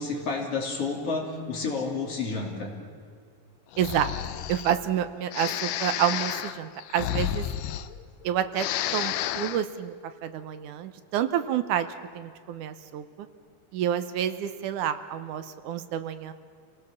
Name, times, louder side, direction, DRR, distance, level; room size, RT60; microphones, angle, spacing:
voice 1, 0.0-2.7, left 4 dB, 45° left, 0 dB, 3.9 m, -30 dB
Breathing, 3.7-4.8 5.3-8.2 8.5-9.7, left 12 dB, 85° left, 2.3 m, -31 dB
voice 2, 3.8-4.1 4.5-7.5 8.2-8.7 8.9-9.9 10.2-11.9 12.2-13.0 13.7-16.3, right 10 dB, 80° right, 11 dB, 2.3 m, -28 dB
28.5 x 18.5 x 7.2 m, 2.2 s
omnidirectional pair, 3.7 m